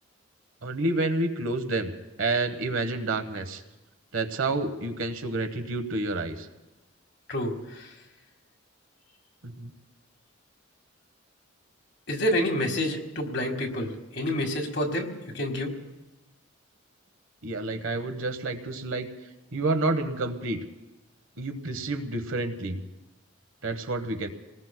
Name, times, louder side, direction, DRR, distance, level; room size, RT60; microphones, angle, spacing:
voice 1, 0.6-1.9 2.2-3.6 4.1-6.5 9.6-9.7 17.4-19.1 19.5-20.6 21.4-22.8 23.6-24.3, right 2 dB, 75° right, 8 dB, 1.1 m, -29 dB
voice 2, 7.3-7.9 12.1-15.7, left 1 dB, 55° left, 3 dB, 1.8 m, -28 dB
29.0 x 19.5 x 2.2 m, 1.0 s
head